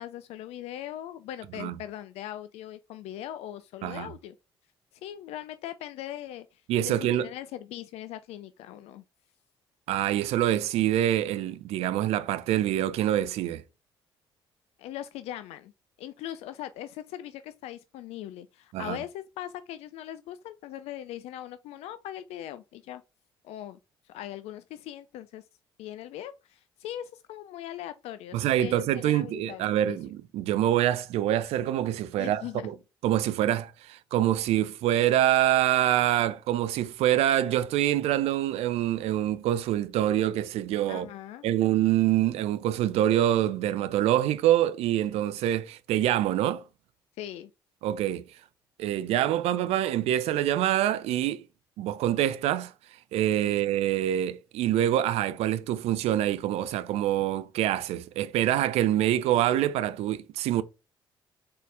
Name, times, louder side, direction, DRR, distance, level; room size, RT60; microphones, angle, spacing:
voice 1, 0.0-4.3 5.0-9.0 14.8-15.7 16.0-23.0 23.4-23.8 24.0-25.4 25.8-30.0 32.2-32.7 40.9-41.4 47.2-47.5 53.5-53.6, left 12 dB, 60° left, 0.4 m, -40 dB
voice 2, 6.7-7.3 9.9-13.6 18.7-19.0 28.3-32.7 33.0-41.1 41.4-46.6 47.8-48.2 48.8-51.4 51.8-52.7 53.1-60.6, right 12 dB, 60° right, 0.5 m, -25 dB
4.0 x 3.7 x 3.3 m
figure-of-eight pair, 45°, 12 cm